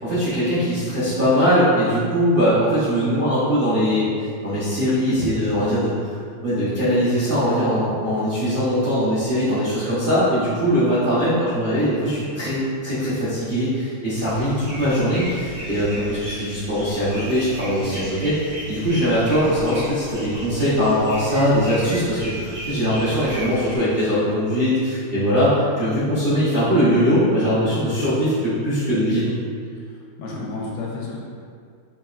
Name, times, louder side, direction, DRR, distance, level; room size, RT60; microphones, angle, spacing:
voice 1, 0.0-4.1 4.4-5.9 6.4-18.4 18.7-29.3, equal, 45° right, -11 dB, 0.7 m, -21 dB
sound 1, 14.2-23.8, right 1 dB, 75° right, 2.4 m, -36 dB
voice 2, 29.7-31.2, left 3 dB, 80° left, -3 dB, 1.4 m, -32 dB
5.2 x 2.9 x 2.4 m, 2.1 s
omnidirectional pair, 2.3 m